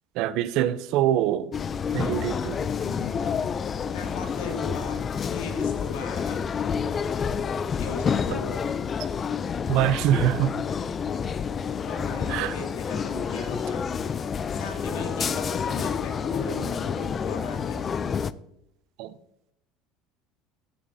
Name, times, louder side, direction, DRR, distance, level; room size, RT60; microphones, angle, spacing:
voice 1, 0.2-1.5 1.9-2.7 8.3-8.4 9.7-10.6 12.3-12.6 19.0-19.1, right 12 dB, 65° right, 0.5 m, -24 dB
sound 1, 1.5-18.3, left 6 dB, 30° left, 0.4 m, -29 dB
voice 2, 2.8-3.6 3.9-5.0 5.3-6.4 7.8-8.6 11.8-13.8 14.5-17.8, left 4 dB, 85° left, 2.3 m, -37 dB
15.5 x 6.7 x 2.7 m
supercardioid pair, 115°, 0 cm